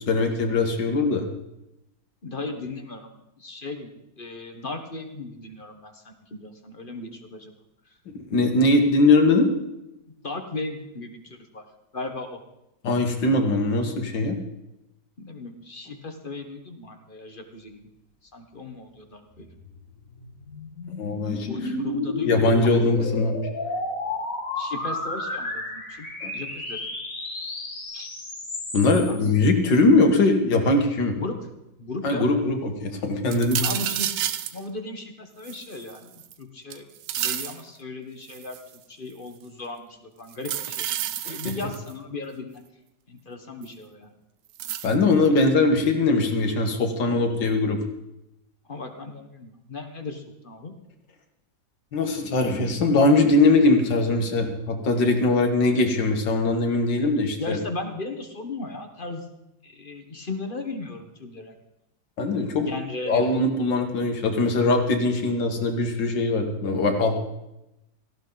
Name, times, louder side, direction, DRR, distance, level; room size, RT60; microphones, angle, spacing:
voice 1, 0.1-1.3 8.3-9.5 12.8-14.4 21.0-21.5 22.2-23.4 26.2-26.3 28.7-31.1 32.0-33.7 41.2-41.5 44.8-47.8 51.9-57.6 62.2-62.7 63.1-67.2, left 2 dB, 85° left, 4 dB, 2.3 m, -21 dB
voice 2, 2.2-3.9 4.2-6.1 6.4-7.5 10.2-11.6 11.9-12.4 15.2-17.9 18.3-19.5 21.4-22.7 24.6-26.1 26.3-26.8 27.9-28.1 29.1-29.2 31.1-31.3 31.8-32.3 33.6-34.1 34.5-36.1 36.4-38.6 38.9-40.9 41.3-42.6 43.1-44.1 45.3-45.4 48.7-50.7 57.4-59.2 59.6-61.5 62.6-63.3, left 3 dB, 30° left, 6 dB, 1.3 m, -36 dB
sound 1, 19.6-29.3, left 2 dB, 50° left, 2.8 m, -32 dB
sound 2, 33.3-34.6 35.4-36.3 36.7-37.6 38.3-38.7 40.3-41.9 43.6-43.7 44.6-44.9, right 11 dB, 75° right, 1.3 m, -30 dB
17.5 x 14.5 x 4.0 m, 0.89 s
omnidirectional pair, 1.9 m